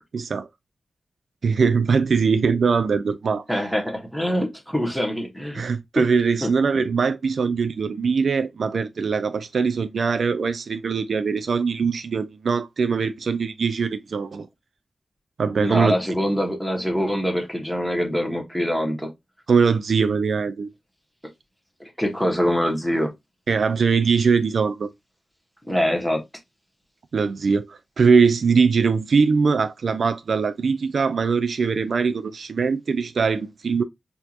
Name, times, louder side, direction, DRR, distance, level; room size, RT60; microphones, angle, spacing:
voice 1, 0.1-0.5 1.4-3.4 5.5-14.5 15.4-15.9 19.5-20.7 23.5-24.9 27.1-33.8, right 5 dB, 70° right, 0.3 m, -21 dB
voice 2, 3.5-5.6 6.4-6.5 15.6-19.1 21.8-23.1 25.6-26.2, equal, ahead, 1.1 m, -24 dB
4.3 x 2.8 x 2.4 m
wide cardioid pair, 105°, 0 cm